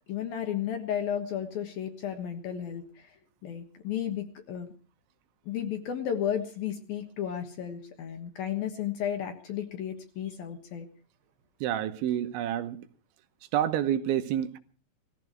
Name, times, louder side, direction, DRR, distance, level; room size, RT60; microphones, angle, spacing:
voice 1, 0.1-3.1 3.4-4.7 5.5-10.9, left 9 dB, 65° left, 2.8 m, -33 dB
voice 2, 11.6-12.8 13.5-14.6, right 11 dB, 85° right, 3.4 m, -28 dB
19.0 x 15.0 x 4.6 m
omnidirectional pair, 5.3 m